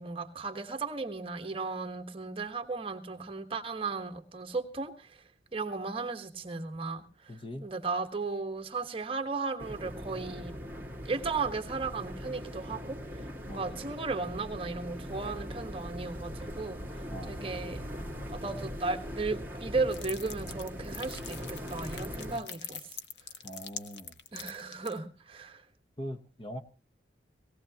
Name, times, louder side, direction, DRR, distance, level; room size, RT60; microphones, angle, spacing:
voice 1, 0.0-5.1 5.5-7.0 7.6-10.5 11.0-13.0 13.5-16.8 17.3-17.8 18.3-22.8 24.3-25.6, right 4 dB, 30° right, 7 dB, 1.2 m, -35 dB
voice 2, 7.3-7.7 13.4-13.8 17.1-17.4 23.4-24.2 26.0-26.6, equal, 30° left, 7 dB, 0.9 m, -41 dB
sound 1, 9.6-22.4, equal, 10° right, 1.9 m, -40 dB
sound 2, 19.9-25.0, left 8 dB, 65° left, 1.1 m, -43 dB
18.5 x 18.0 x 2.8 m, 0.34 s
head